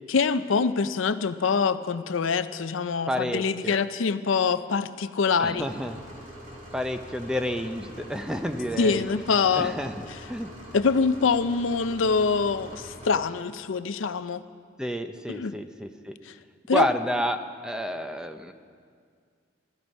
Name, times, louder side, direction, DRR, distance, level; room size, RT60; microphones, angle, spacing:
voice 1, 0.1-5.7 8.8-9.7 10.7-14.4 15.3-15.6 16.3-16.4 16.7-16.9, left 5 dB, 85° left, 12 dB, 0.5 m, -25 dB
voice 2, 3.1-3.8 5.4-6.0 6.7-9.1 9.6-10.5 14.8-16.1 16.7-18.5, equal, 5° right, 7 dB, 0.6 m, -30 dB
sound 1, 5.5-13.1, equal, 40° right, 2.8 m, -44 dB
15.0 x 14.0 x 5.4 m, 2.1 s
head